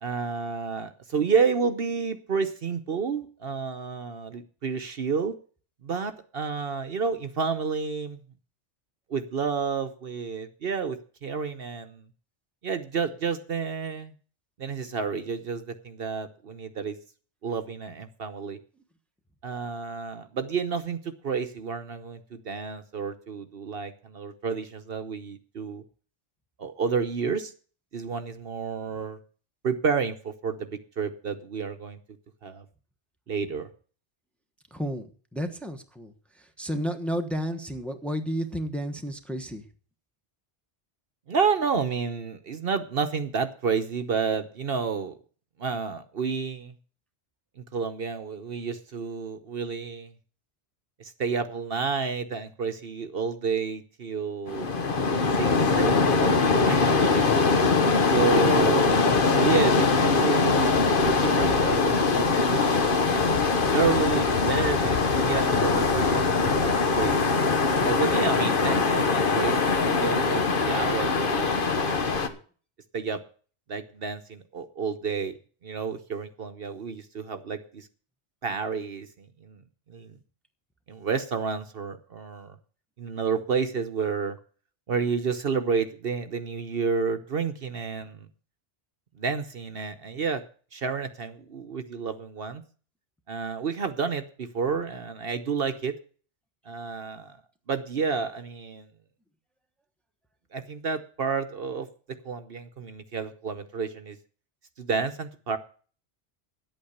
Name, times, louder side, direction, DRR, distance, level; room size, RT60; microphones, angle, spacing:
voice 1, 0.0-5.3 5.8-8.2 9.1-12.1 12.6-14.1 14.6-17.0 17.4-18.6 19.4-25.8 26.6-27.5 27.9-29.2 29.6-32.0 32.4-32.6 33.3-33.7 41.3-45.2 45.6-46.7 47.6-50.1 51.0-54.7 55.3-57.2 58.1-60.7 61.0-63.0 63.7-67.3 67.8-72.4 72.9-73.2 73.7-75.3 75.6-77.9 78.4-79.6 79.9-80.2 80.9-82.6 83.0-84.4 84.9-88.3 89.2-90.4 90.7-92.6 93.3-95.9 96.7-97.4 97.7-98.9 100.5-101.9 102.2-104.2 104.8-105.6, right 5 dB, 55° right, 8 dB, 1.1 m, -30 dB
voice 2, 34.7-35.1 35.3-36.1 36.6-39.6, equal, ahead, 5 dB, 1.1 m, -31 dB
sound 1, 54.5-72.3, left 4 dB, 50° left, 1.3 m, -22 dB
11.0 x 8.6 x 6.6 m, 0.41 s
omnidirectional pair, 1.2 m